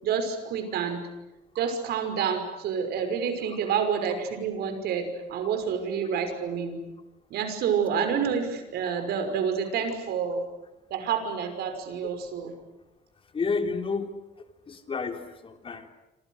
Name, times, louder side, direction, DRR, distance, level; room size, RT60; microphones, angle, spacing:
voice 1, 0.0-1.0 1.5-6.8 7.3-10.4 10.9-12.5, right 7 dB, 70° right, 8 dB, 5.9 m, -28 dB
voice 2, 13.3-14.1 14.7-15.9, left 4 dB, 30° left, 6 dB, 3.7 m, -30 dB
28.0 x 27.0 x 6.6 m, 0.98 s
cardioid pair, 110°, 17 cm